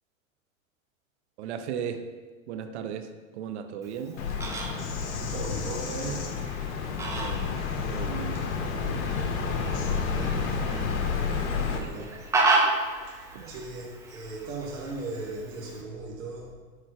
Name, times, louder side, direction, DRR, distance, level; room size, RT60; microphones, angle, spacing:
voice 1, 1.4-2.0 2.5-4.2 7.1-7.6 7.9-9.0 9.7-10.3 13.3-13.5, right 8 dB, 50° right, 8 dB, 0.6 m, -37 dB
Fowl, 3.8-15.8, right 3 dB, 5° right, 0.5 m, -33 dB
Bird vocalization bird call bird song, 4.2-11.8, left 5 dB, 50° left, 1.0 m, -30 dB
voice 2, 5.3-6.3 8.3-8.5 9.6-9.7 10.1-10.5 11.4-12.2 12.5-12.6 13.1-16.5, right 3 dB, 70° right, -1 dB, 1.4 m, -38 dB
6.4 x 3.8 x 4.8 m, 1.4 s
hypercardioid pair, 105°, 42 cm